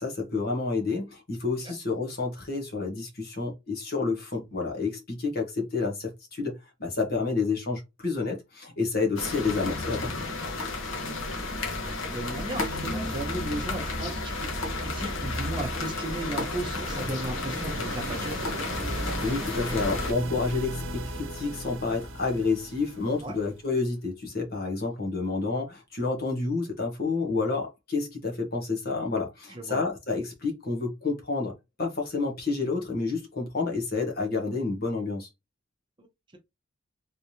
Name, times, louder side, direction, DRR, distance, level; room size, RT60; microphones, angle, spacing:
voice 1, 0.0-10.3 18.9-35.3, left 3 dB, 50° left, 1.2 m, -29 dB
sound 1, 9.2-20.1, left 2 dB, 80° left, 1.1 m, -32 dB
voice 2, 11.8-18.4 23.2-23.3 29.5-29.8 36.0-36.1, right 2 dB, 25° right, 0.8 m, -36 dB
sound 2, 15.3-23.7, right 1 dB, 80° right, 0.8 m, -38 dB
3.4 x 3.2 x 2.8 m
head